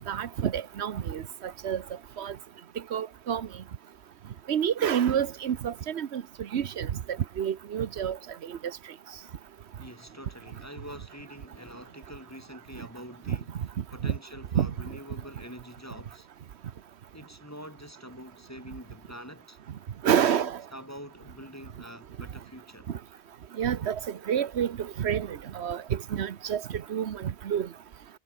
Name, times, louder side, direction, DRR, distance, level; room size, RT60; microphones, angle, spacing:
voice 1, 0.1-1.8 2.2-2.4 2.9-3.5 4.5-6.9 7.4-8.2 8.4-8.6 13.3-13.4 14.0-14.2 14.5-14.7 20.0-20.6 23.6-27.7, right 9 dB, 85° right, 1.2 m, -28 dB
voice 2, 9.8-16.3 17.1-19.6 20.3-22.9, equal, 15° left, 7.3 m, -45 dB
omnidirectional pair, 1.1 m